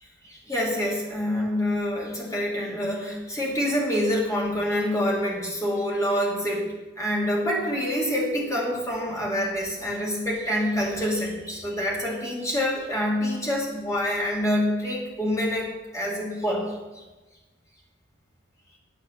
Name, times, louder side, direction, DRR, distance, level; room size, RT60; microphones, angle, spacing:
voice 1, 0.2-15.7 15.9-17.0, equal, 15° left, -3 dB, 2.6 m, -26 dB
10.0 x 8.0 x 6.6 m, 1.2 s
head